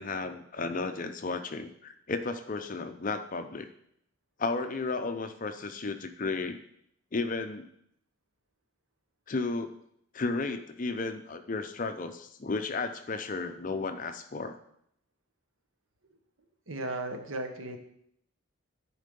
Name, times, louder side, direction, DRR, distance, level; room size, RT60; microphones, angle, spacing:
voice 1, 0.0-3.7 4.4-6.6 7.1-7.7 9.3-9.7 10.1-14.6, left 3 dB, 35° left, 8 dB, 0.5 m, -33 dB
voice 2, 16.7-17.8, right 2 dB, 70° right, 6 dB, 1.1 m, -35 dB
10.0 x 4.6 x 5.3 m, 0.71 s
head